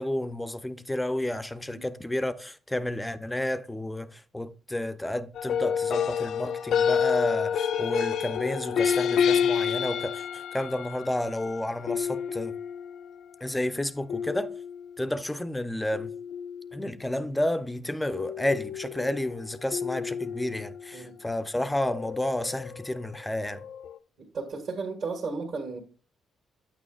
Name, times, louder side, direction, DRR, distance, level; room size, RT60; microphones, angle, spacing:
voice 1, 0.0-12.6 13.4-14.6 15.0-16.1 16.7-23.7, left 1 dB, 10° left, 0.5 m, -31 dB
sound 1, 5.4-13.1 14.1-14.9 15.9-16.9 18.1-21.0 21.8-23.2 23.5-24.0, left 7 dB, 70° left, 0.4 m, -29 dB
voice 2, 24.3-25.8, right 4 dB, 60° right, 1.7 m, -34 dB
8.8 x 8.7 x 2.4 m
cardioid pair, 90°, 0 cm